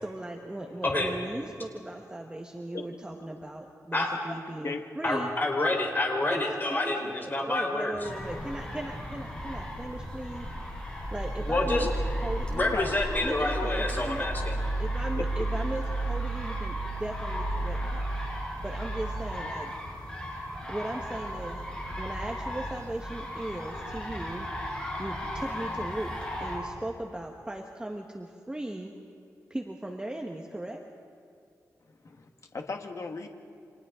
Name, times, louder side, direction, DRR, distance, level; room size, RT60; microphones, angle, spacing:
voice 1, 0.0-5.3 6.3-10.5 11.1-11.9 12.2-12.8 13.2-14.3 14.8-18.1 18.6-19.7 20.7-21.6 21.9-24.5 25.0-26.1 26.4-28.9 29.5-30.8, right 1 dB, 15° right, 1 dB, 1.4 m, -37 dB
voice 2, 0.8-1.1 3.9-4.1 5.0-7.9 11.4-11.9 12.5-14.6, left 2 dB, 30° left, 0 dB, 4.3 m, -28 dB
sound 1, 8.0-26.6, right 1 dB, 15° left, 6.0 m, -34 dB
voice 3, 32.5-33.3, left 4 dB, 55° left, 4 dB, 1.7 m, -35 dB
30.0 x 26.0 x 3.8 m, 2.5 s
wide cardioid pair, 105°, 6 cm